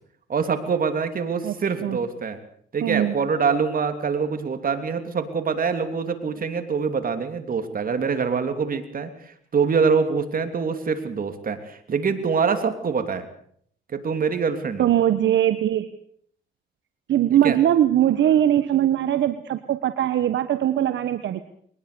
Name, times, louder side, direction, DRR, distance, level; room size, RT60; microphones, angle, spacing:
voice 1, 0.3-2.4 2.7-13.3 13.9-14.9 17.3-17.6, right 5 dB, 45° right, 8 dB, 3.1 m, -25 dB
voice 2, 2.8-3.2 14.8-15.9 17.1-21.5, right 11 dB, 70° right, 11 dB, 1.2 m, -21 dB
22.0 x 20.0 x 6.9 m, 0.63 s
cardioid pair, 90°, 20 cm